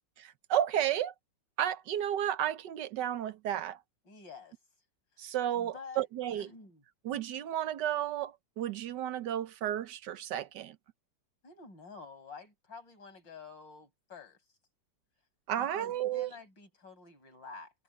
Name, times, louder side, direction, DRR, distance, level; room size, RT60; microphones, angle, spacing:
voice 1, 0.5-1.1 1.6-3.8 5.2-6.5 7.0-10.7 15.5-16.3, right 11 dB, 70° right, 1.4 m, -32 dB
voice 2, 4.0-4.6 5.5-6.1 6.3-6.8 11.4-14.4 15.6-17.7, left 4 dB, 80° left, 7.1 m, -49 dB
omnidirectional pair, 2.0 m